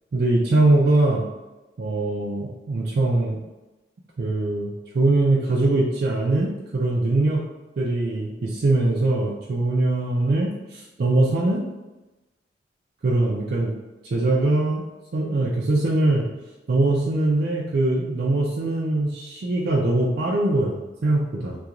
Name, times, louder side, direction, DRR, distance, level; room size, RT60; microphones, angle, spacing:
voice 1, 0.1-1.3 1.8-3.4 4.2-7.4 7.8-11.6 13.0-13.7 14.1-14.8 15.1-16.3 16.7-21.6, right 2 dB, 55° right, -3 dB, 0.4 m, -22 dB
2.4 x 2.3 x 2.8 m, 1.1 s
head